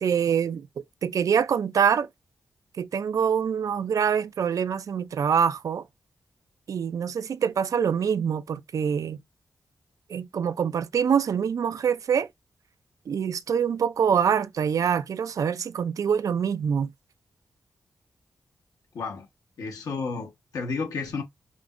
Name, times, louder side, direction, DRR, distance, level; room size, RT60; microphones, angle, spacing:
voice 1, 0.0-2.1 2.8-5.9 6.7-9.2 10.1-12.3 13.1-16.9, right 7 dB, 65° right, 0.4 m, -25 dB
voice 2, 18.9-19.3 19.6-21.2, left 4 dB, 80° left, 1.2 m, -32 dB
5.1 x 3.0 x 2.5 m
cardioid pair, 85°, 6 cm